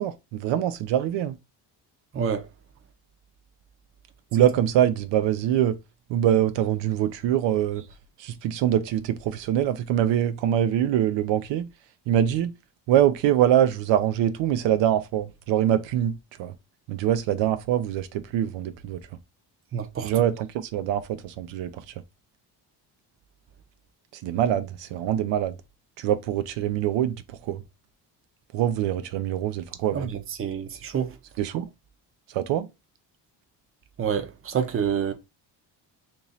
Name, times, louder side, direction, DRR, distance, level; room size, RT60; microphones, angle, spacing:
voice 1, 0.0-1.4 4.3-5.8 6.1-7.8 8.2-11.7 12.1-12.5 12.9-16.5 16.9-19.0 20.0-21.7 24.2-25.5 26.0-27.2 27.4-27.6 28.5-30.1 31.4-31.7 32.3-32.7, right 11 dB, 80° right, 0.6 m, -24 dB
voice 2, 2.1-2.5 19.7-20.1 29.9-31.2 34.0-35.1, right 7 dB, 30° right, 0.6 m, -28 dB
2.9 x 2.7 x 3.9 m
cardioid pair, 130°, 43 cm